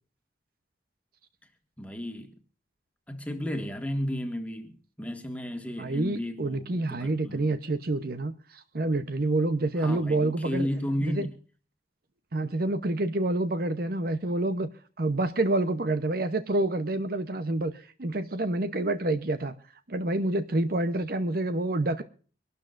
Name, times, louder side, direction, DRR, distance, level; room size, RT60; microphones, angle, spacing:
voice 1, 1.8-2.3 3.1-7.5 9.8-11.3, equal, 5° left, 1.7 m, -33 dB
voice 2, 5.8-10.7 11.0-11.3 12.3-14.7 15.0-17.7 18.0-19.5 19.9-22.0, right 2 dB, 50° right, 0.8 m, -28 dB
24.5 x 12.5 x 2.5 m
head